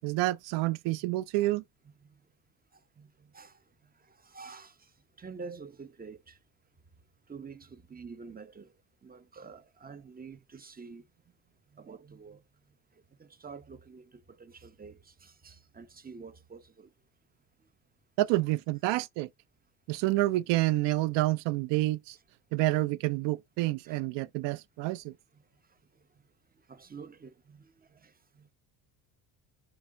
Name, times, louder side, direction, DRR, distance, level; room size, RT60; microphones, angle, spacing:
voice 1, 0.0-1.6 18.2-19.3 19.9-22.2 22.5-25.1, right 18 dB, 65° right, 0.5 m, -28 dB
voice 2, 4.1-4.8 5.2-6.4 7.3-8.7 9.0-11.0 11.7-12.4 13.2-16.9 22.6-22.7 23.9-24.0 26.7-28.5, right 5 dB, 20° right, 0.9 m, -48 dB
5.9 x 4.6 x 3.7 m
hypercardioid pair, 70°, 49 cm